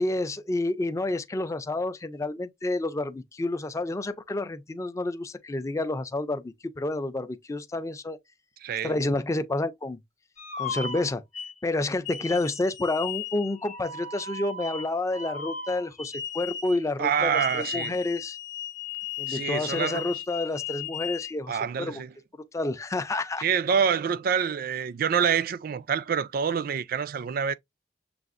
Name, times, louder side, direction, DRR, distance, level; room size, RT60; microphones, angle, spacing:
voice 1, 0.0-8.2 8.8-10.0 10.6-11.2 11.6-18.4 19.2-22.0 22.5-23.4, left 2 dB, 20° left, 0.4 m, -29 dB
voice 2, 8.6-9.0 17.0-18.0 19.3-20.2 21.5-22.1 23.4-27.5, right 7 dB, 55° right, 0.3 m, -26 dB
sound 1, 10.4-11.5 12.0-16.9 17.3-21.3, left 7 dB, 40° left, 0.8 m, -36 dB
6.8 x 2.3 x 2.5 m
head